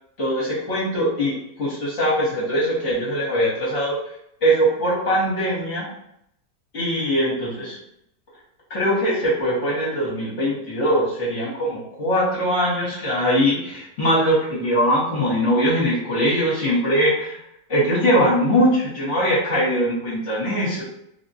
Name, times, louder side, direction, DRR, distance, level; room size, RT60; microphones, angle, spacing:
voice 1, 0.2-4.0 4.4-5.9 6.7-7.8 8.7-17.4 17.7-20.8, equal, 55° left, -7 dB, 1.1 m, -21 dB
3.5 x 2.1 x 2.7 m, 0.75 s
omnidirectional pair, 1.7 m